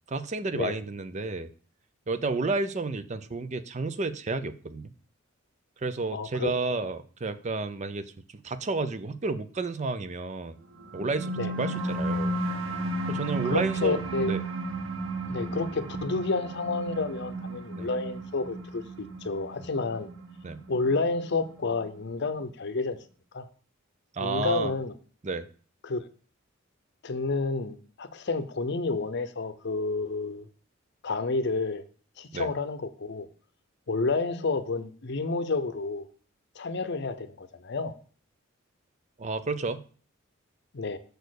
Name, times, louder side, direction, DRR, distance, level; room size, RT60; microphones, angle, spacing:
voice 1, 0.1-1.5 2.1-4.9 5.8-10.6 10.9-12.3 13.1-14.0 14.3-14.4 17.8-17.9 20.4-20.6 24.1-24.7 25.2-25.5 32.3-32.5 39.2-39.8, right 3 dB, 35° right, 0.5 m, -31 dB
voice 2, 6.1-6.5 11.4-11.5 13.5-14.3 15.3-20.1 20.7-23.0 23.3-23.4 24.2-24.9 25.8-26.1 27.0-30.5 31.0-31.8 32.2-33.3 33.9-36.1 36.6-37.9 40.7-41.0, left 3 dB, 55° left, 0.7 m, -30 dB
sound 1, 10.8-21.8, right 2 dB, 65° right, 1.1 m, -33 dB
6.6 x 4.3 x 6.4 m
head